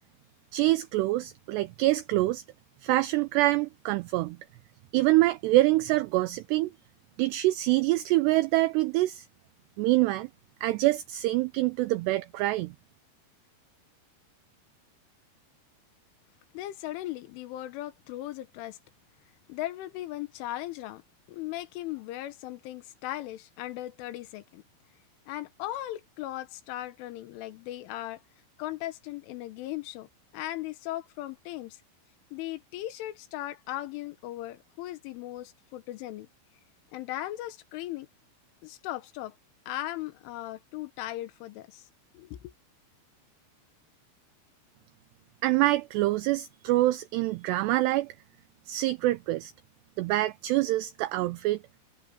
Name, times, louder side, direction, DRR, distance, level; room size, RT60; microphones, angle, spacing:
voice 1, 0.5-2.4 2.8-4.4 4.9-6.7 7.2-9.3 9.8-10.3 10.6-12.7 45.4-48.2 48.7-49.5 50.0-51.6, right 17 dB, 80° right, 2.5 m, -25 dB
voice 2, 16.5-18.8 19.5-21.0 21.3-24.6 25.3-28.2 28.6-30.1 30.3-31.8 32.3-36.3 36.9-38.1 38.6-39.4 39.7-41.9 42.1-42.5, left 15 dB, 90° left, 3.7 m, -37 dB
omnidirectional pair, 5.5 m